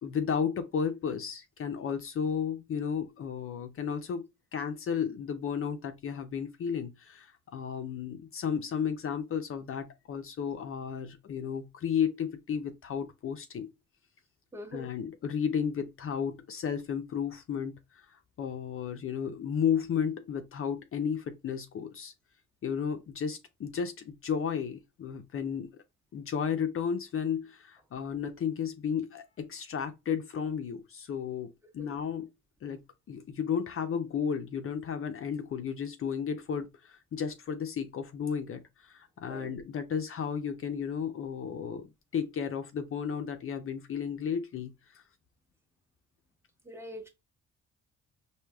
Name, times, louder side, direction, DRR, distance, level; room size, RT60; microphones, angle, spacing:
voice 1, 0.0-13.7 14.7-22.1 22.6-25.7 26.1-32.3 32.6-44.7, left 7 dB, 45° left, 0.5 m, -33 dB
voice 2, 14.5-14.9 31.8-31.9 39.3-39.5 46.6-47.1, equal, 10° right, 1.0 m, -43 dB
4.6 x 2.7 x 2.3 m
cardioid pair, 90°, 30 cm